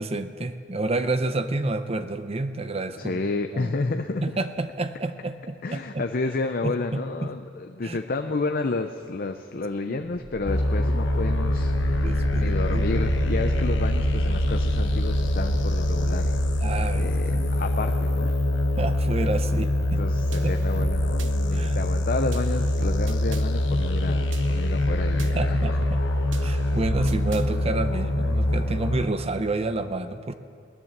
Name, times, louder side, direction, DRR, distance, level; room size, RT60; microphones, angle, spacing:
voice 1, 0.0-3.2 3.5-3.7 4.2-6.1 6.6-7.3 7.8-8.0 9.9-10.0 11.8-12.9 16.6-17.5 18.8-20.8 21.5-21.8 25.3-26.0 26.4-30.3, right 2 dB, 30° right, 10 dB, 0.6 m, -29 dB
voice 2, 3.0-4.2 5.6-16.4 16.9-18.3 20.0-25.8, left 3 dB, 50° left, 6 dB, 0.6 m, -31 dB
sound 1, 10.1-17.8, right 2 dB, 50° right, 1.5 m, -32 dB
sound 2, 10.5-29.0, left 1 dB, 70° left, 1.2 m, -24 dB
sound 3, 19.8-20.0 20.3-21.3 21.8-22.0 22.3-23.4 23.8-24.0 24.3-25.3 25.8-26.0 26.3-27.4, right 3 dB, 70° right, 0.8 m, -37 dB
17.5 x 11.0 x 7.3 m, 2.4 s
head